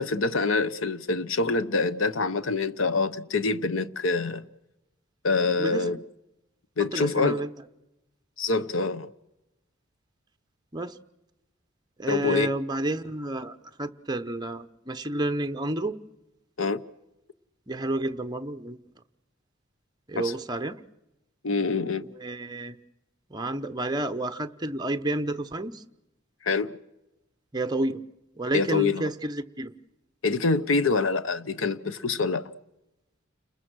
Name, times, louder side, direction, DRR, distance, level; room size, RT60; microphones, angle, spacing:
voice 1, 0.0-4.5 5.2-6.0 6.8-7.4 8.4-9.1 12.1-12.5 16.6-16.8 20.2-20.3 21.4-22.0 26.4-26.8 28.5-29.1 30.2-32.5, left 4 dB, 75° left, 0.9 m, -25 dB
voice 2, 6.9-7.5 10.7-11.0 12.0-16.0 17.7-18.8 20.1-20.8 22.2-22.8 23.3-25.8 27.5-28.0 28.4-29.7, right 1 dB, 20° right, 0.9 m, -30 dB
29.5 x 21.0 x 6.3 m
head